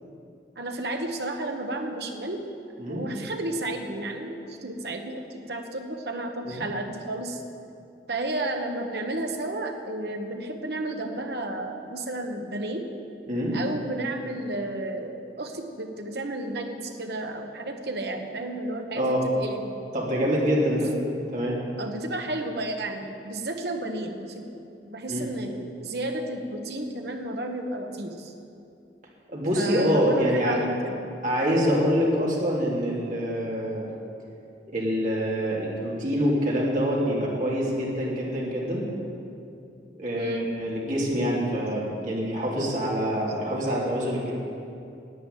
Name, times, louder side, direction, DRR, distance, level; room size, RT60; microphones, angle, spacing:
voice 1, 0.6-2.5 2.9-7.4 8.1-12.9 13.5-19.8 20.7-20.8 21.8-24.4 24.8-28.3 29.5-31.0 40.1-40.5, right 1 dB, 65° right, 4 dB, 1.3 m, -32 dB
voice 2, 13.3-13.6 18.9-19.3 19.9-20.9 21.3-21.6 25.1-25.2 29.3-30.6 31.2-33.9 34.7-38.8 39.9-44.3, equal, 45° right, -5 dB, 3.0 m, -25 dB
11.0 x 9.3 x 9.1 m, 2.6 s
head